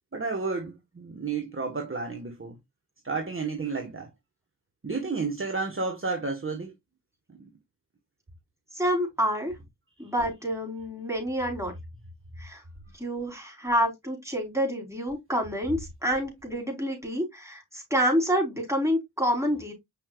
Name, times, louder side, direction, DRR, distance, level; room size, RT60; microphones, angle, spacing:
voice 1, 0.1-2.6 3.0-4.1 4.8-6.7 7.4-7.5 10.0-10.1, right 4 dB, 35° right, 1.6 m, -31 dB
voice 2, 8.7-9.5 10.0-11.7 12.4-12.6 13.0-19.7, equal, 5° right, 4.6 m, -28 dB
6.9 x 5.4 x 2.5 m
cardioid pair, 50°, 39 cm